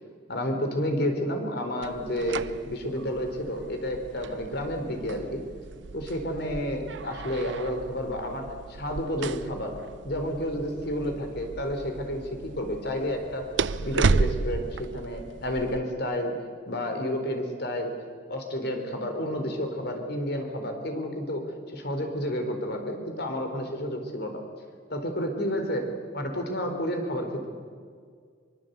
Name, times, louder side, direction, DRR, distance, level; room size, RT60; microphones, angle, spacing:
voice 1, 0.3-5.4 5.9-9.7 10.0-13.5 13.8-16.3 16.7-17.9 18.3-24.4 24.9-27.5, equal, 60° left, 5 dB, 4.2 m, -30 dB
sound 1, 1.8-15.8, right 4 dB, 75° right, 0.7 m, -33 dB
24.5 x 24.0 x 8.3 m, 2.1 s
head